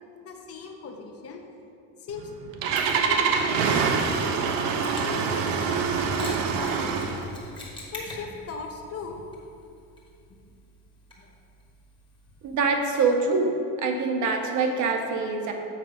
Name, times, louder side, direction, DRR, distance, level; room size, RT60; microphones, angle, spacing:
voice 1, 0.1-1.4 2.0-2.3 2.9-4.1 4.4-7.3 7.9-9.2 11.2-11.3, left 4 dB, 35° left, 3 dB, 0.8 m, -39 dB
Engine starting, 2.1-7.3, right 5 dB, 85° right, 0.8 m, -25 dB
Mechanisms, 2.8-12.6, left 1 dB, 10° left, 1.2 m, -46 dB
voice 2, 12.4-13.5 13.8-15.5, right 4 dB, 45° right, 3 dB, 0.9 m, -24 dB
7.4 x 4.5 x 5.0 m, 2.7 s
cardioid pair, 155°, 41 cm